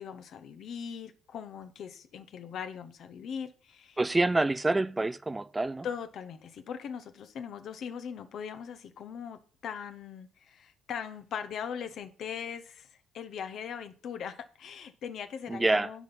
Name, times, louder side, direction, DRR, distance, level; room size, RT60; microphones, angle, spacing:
voice 1, 0.0-4.0 5.8-16.0, left 7 dB, 60° left, 1.0 m, -40 dB
voice 2, 4.0-5.9 15.5-15.9, right 2 dB, 20° right, 0.4 m, -27 dB
9.7 x 5.3 x 5.6 m
hypercardioid pair, 60°, 0 cm